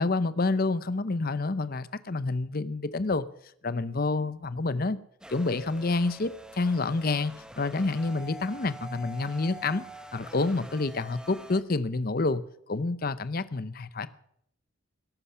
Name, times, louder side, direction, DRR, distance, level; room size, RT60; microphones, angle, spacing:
voice 1, 0.0-3.3 3.6-5.0 5.3-9.8 10.1-12.4 12.7-14.1, left 3 dB, 45° left, 0.7 m, -28 dB
sound 1, 5.2-11.6, right 1 dB, 5° right, 1.0 m, -46 dB
19.5 x 11.5 x 5.6 m
head